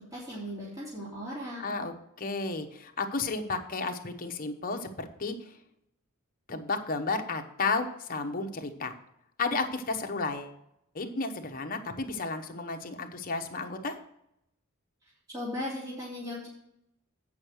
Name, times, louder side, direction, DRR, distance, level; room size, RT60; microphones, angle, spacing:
voice 1, 0.1-1.7 15.3-16.5, left 1 dB, 15° right, -8 dB, 2.8 m, -37 dB
voice 2, 1.6-5.3 6.5-8.9 9.4-10.5 10.9-13.9, left 3 dB, 40° left, 5 dB, 1.0 m, -32 dB
8.6 x 5.6 x 6.4 m, 0.77 s
head